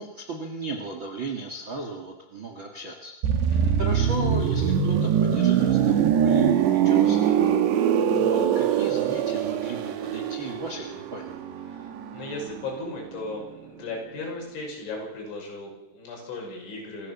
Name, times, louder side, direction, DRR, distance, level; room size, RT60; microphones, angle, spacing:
voice 1, 0.0-3.2 3.5-7.6 8.0-11.4, right 3 dB, 45° right, 2 dB, 1.6 m, -36 dB
sound 1, 3.2-12.9 13.2-13.4, right 8 dB, 70° right, 3.3 m, -23 dB
voice 2, 8.1-8.5 11.7-17.1, left 2 dB, 75° left, 0 dB, 8.3 m, -37 dB
26.0 x 15.5 x 7.3 m, 1.0 s
omnidirectional pair, 5.5 m